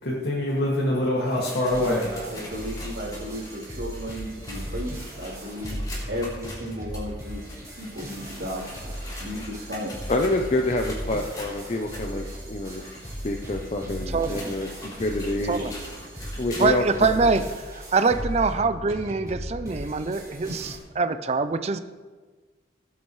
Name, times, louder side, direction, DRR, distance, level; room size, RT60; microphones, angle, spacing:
voice 1, 0.0-2.1, left 1 dB, 80° left, -5 dB, 2.2 m, -24 dB
sound 1, 1.0-16.9 17.4-17.5 18.2-18.3 19.2-19.3, left 1 dB, 20° left, 3.5 m, -44 dB
sound 2, 1.7-20.8, equal, 20° right, 3.8 m, -37 dB
voice 2, 1.8-5.8 6.1-7.4 7.7-8.6 9.2-9.9 13.8-14.0 15.2-15.4, equal, 80° right, -5 dB, 3.6 m, -35 dB
voice 3, 9.1-9.5 10.1-15.8 16.4-17.1, left 2 dB, 40° left, 2 dB, 0.7 m, -28 dB
voice 4, 14.1-14.6 15.5-15.7 16.6-21.8, right 4 dB, 35° right, 12 dB, 0.5 m, -24 dB
18.0 x 8.7 x 3.2 m, 1.4 s
head